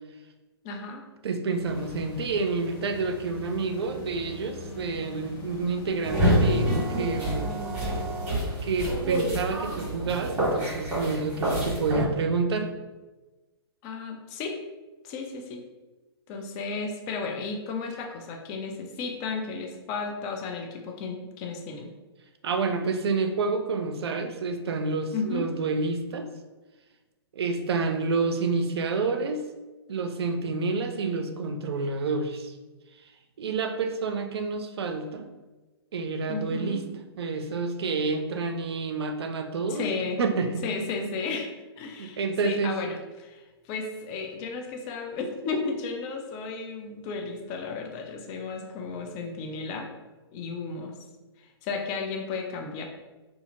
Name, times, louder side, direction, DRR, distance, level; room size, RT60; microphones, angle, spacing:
voice 1, 0.6-1.0 13.8-14.6 15.0-15.6 16.3-21.9 25.1-25.5 36.3-36.8 39.7-40.2 40.6-41.5 41.8-49.9 50.3-50.9 51.4-52.8, left 4 dB, 25° left, 3 dB, 0.3 m, -34 dB
voice 2, 1.2-7.5 8.6-12.7 22.4-26.3 27.3-29.4 29.9-32.5 33.4-35.3 35.9-36.8 37.2-39.9 40.2-40.6 42.0-42.8, right 4 dB, 70° right, 6 dB, 0.4 m, -28 dB
sound 1, 1.4-7.5, left 2 dB, 50° left, 0.8 m, -43 dB
sound 2, 6.0-12.0, right 1 dB, 10° right, 1.3 m, -27 dB
2.7 x 2.5 x 2.4 m, 1.2 s
hypercardioid pair, 125°, 14 cm